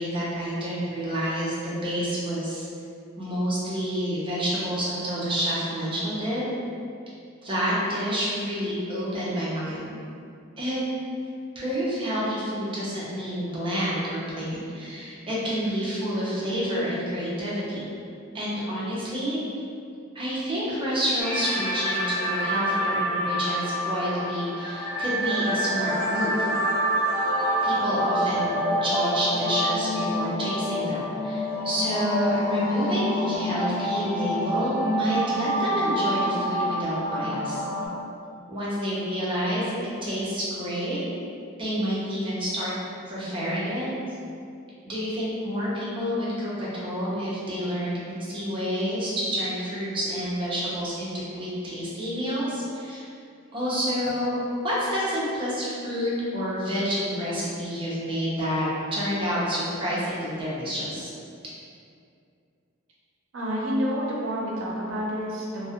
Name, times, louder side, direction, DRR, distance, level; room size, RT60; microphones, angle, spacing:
voice 1, 0.0-2.7 3.2-6.4 7.4-9.9 10.6-10.8 11.5-17.9 18.3-19.4 20.1-26.5 27.6-37.6 38.5-41.0 41.6-42.7 43.1-44.2 44.8-53.1 53.5-54.4 54.6-61.1, equal, 25° right, -8 dB, 0.6 m, -28 dB
sound 1, 21.2-37.9, equal, 45° left, 0.6 m, -27 dB
voice 2, 63.3-65.7, equal, 70° right, -4 dB, 0.5 m, -28 dB
2.3 x 2.0 x 2.7 m, 2.4 s
head